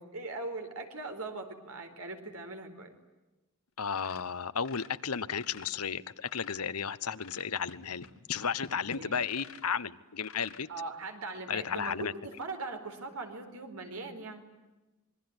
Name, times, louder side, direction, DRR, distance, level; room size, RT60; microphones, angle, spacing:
voice 1, 0.0-2.9 8.9-9.2 10.7-14.4, right 3 dB, 75° right, 5 dB, 4.4 m, -40 dB
voice 2, 3.8-10.7 11.5-12.1, left 6 dB, 80° left, 15 dB, 1.1 m, -34 dB
sound 1, 4.0-5.8 6.1-6.8 7.2-9.7 10.2-10.7 11.3-11.4 11.8-11.9 12.3-12.5, left 3 dB, 65° left, 2.2 m, -48 dB
27.0 x 22.0 x 9.8 m, 1.1 s
head